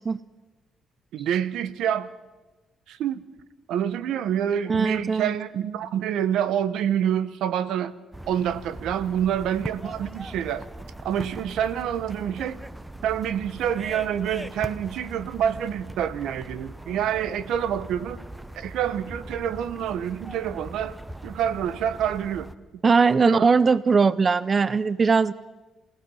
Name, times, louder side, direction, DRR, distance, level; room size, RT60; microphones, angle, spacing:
voice 1, 1.1-2.1 2.9-3.2 3.7-7.9 8.3-10.6 11.0-12.6 13.0-18.3 18.6-21.0 21.2-22.5 23.2-23.5, right 9 dB, 85° right, 14 dB, 1.0 m, -27 dB
voice 2, 4.7-5.3 22.8-25.3, right 5 dB, 35° right, 17 dB, 0.6 m, -20 dB
sound 1, 8.1-22.5, right 1 dB, 10° right, 1.0 m, -40 dB
28.0 x 17.5 x 5.6 m, 1.2 s
cardioid pair, 90°, 0 cm